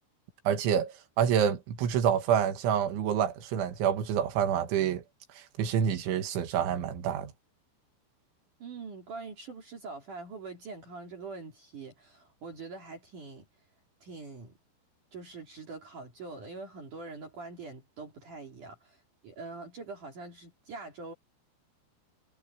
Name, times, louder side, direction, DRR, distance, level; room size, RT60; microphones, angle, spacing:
voice 1, 0.5-5.0 5.6-7.3, right 8 dB, 85° right, 4.4 m, -27 dB
voice 2, 8.6-13.5 14.0-14.5 15.1-19.0 19.2-21.1, right 4 dB, 50° right, 4.1 m, -44 dB
omnidirectional pair, 5.3 m